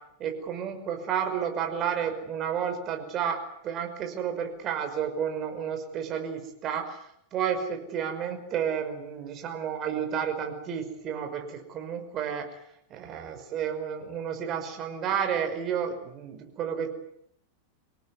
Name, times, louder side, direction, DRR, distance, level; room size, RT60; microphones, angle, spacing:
voice 1, 0.2-7.0 7.3-12.5 12.9-16.9, right 8 dB, 30° right, 6 dB, 5.7 m, -31 dB
26.5 x 18.5 x 9.7 m, 0.73 s
figure-of-eight pair, 90°, 0 cm